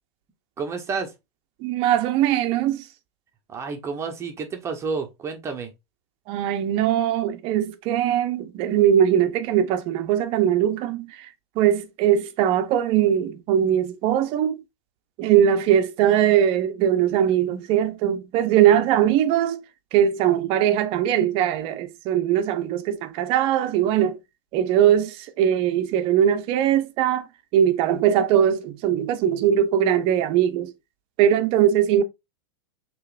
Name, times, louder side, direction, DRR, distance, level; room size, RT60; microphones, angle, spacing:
voice 1, 0.6-1.1 3.5-5.7, right 5 dB, 20° right, 1.0 m, -30 dB
voice 2, 1.6-2.9 6.3-11.3 11.6-14.6 15.2-19.6 19.9-24.2 24.5-27.2 27.5-30.7 31.2-32.0, right 10 dB, 40° right, 0.8 m, -21 dB
6.4 x 3.1 x 2.5 m
supercardioid pair, 140°, 15 cm